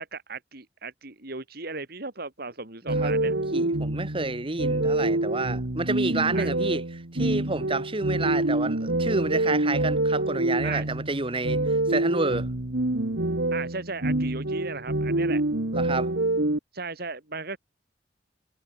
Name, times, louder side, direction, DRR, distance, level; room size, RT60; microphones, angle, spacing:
voice 1, 0.0-3.3 6.3-6.5 10.6-10.9 13.5-15.4 16.7-17.6, right 4 dB, 60° right, 3.4 m, -36 dB
sound 1, 2.9-16.6, right 2 dB, 75° right, 1.9 m, -26 dB
voice 2, 3.0-6.8 7.1-12.5 15.7-16.1, right 3 dB, 30° right, 1.8 m, -29 dB
head